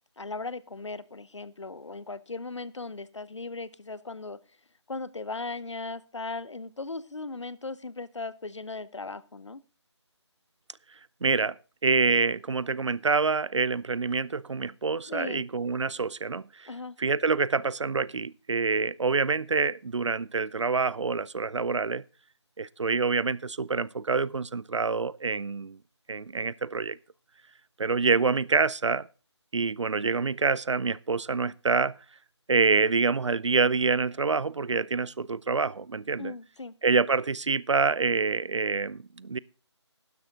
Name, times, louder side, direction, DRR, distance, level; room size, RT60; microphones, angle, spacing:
voice 1, 0.2-4.4 4.9-9.6 15.1-15.5 16.7-17.0 36.2-36.7, left 3 dB, 75° left, 0.9 m, -37 dB
voice 2, 11.2-16.7 17.0-22.0 22.6-25.8 26.1-27.0 27.8-29.1 29.5-32.0 32.5-36.3 36.8-39.4, right 4 dB, 75° right, 0.6 m, -26 dB
12.0 x 10.5 x 3.9 m
figure-of-eight pair, 160°, 15 cm